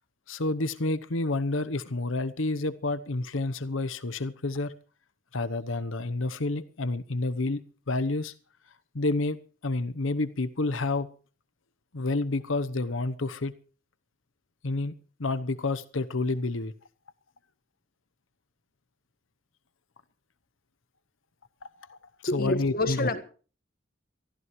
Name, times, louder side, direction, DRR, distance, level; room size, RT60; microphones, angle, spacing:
voice 1, 0.3-4.7 5.3-7.6 7.9-8.3 8.9-9.4 9.6-11.1 11.9-13.5 14.6-14.9 15.2-16.7 21.6-22.0 22.3-23.1, left 2 dB, 85° left, 0.9 m, -29 dB
voice 2, 22.3-23.2, left 2 dB, 45° left, 1.6 m, -28 dB
23.5 x 14.5 x 3.2 m
head